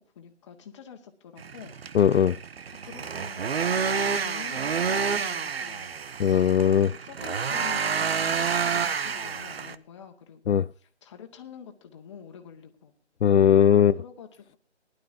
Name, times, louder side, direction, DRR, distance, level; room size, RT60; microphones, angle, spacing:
voice 1, 0.0-1.8 2.8-3.4 3.8-5.9 6.6-12.9 13.9-14.6, left 8 dB, 25° left, 1.7 m, -47 dB
sound 1, 1.4-9.7, right 6 dB, 60° right, 0.9 m, -29 dB
voice 2, 1.9-2.4 6.2-6.9 10.5-10.6 13.2-13.9, left 8 dB, 75° left, 0.5 m, -19 dB
19.5 x 11.5 x 2.7 m
figure-of-eight pair, 155°, 34 cm